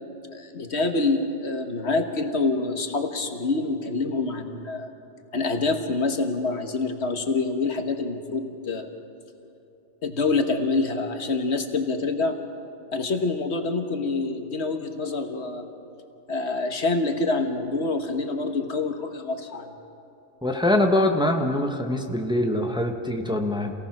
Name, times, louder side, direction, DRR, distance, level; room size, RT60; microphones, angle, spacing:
voice 1, 0.3-4.9 5.3-8.9 10.0-12.3 12.9-15.7 16.3-19.7, left 3 dB, 65° left, 6 dB, 1.6 m, -26 dB
voice 2, 20.4-23.7, left 1 dB, 5° right, 3 dB, 1.3 m, -23 dB
28.5 x 17.5 x 6.1 m, 2.9 s
omnidirectional pair, 1.2 m